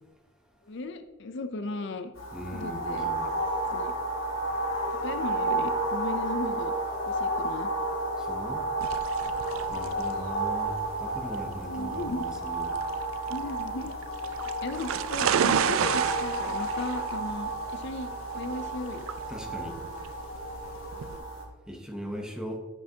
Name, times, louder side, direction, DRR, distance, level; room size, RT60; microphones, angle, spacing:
voice 1, 0.6-2.1 2.5-3.1 3.7-3.9 5.0-6.7 7.1-7.7 11.6-12.3 13.3-13.9 14.6-19.1 20.9-21.2, left 2 dB, 60° left, 9 dB, 0.5 m, -36 dB
sound 1, 2.2-21.4, right 2 dB, 85° left, 1.6 m, -32 dB
voice 2, 2.3-3.3 8.2-8.7 9.7-12.8 19.3-19.8 21.7-22.6, equal, 5° right, 2 dB, 0.9 m, -39 dB
sound 2, 8.8-21.2, right 8 dB, 90° right, 0.4 m, -32 dB
9.4 x 6.7 x 2.8 m, 1.3 s
head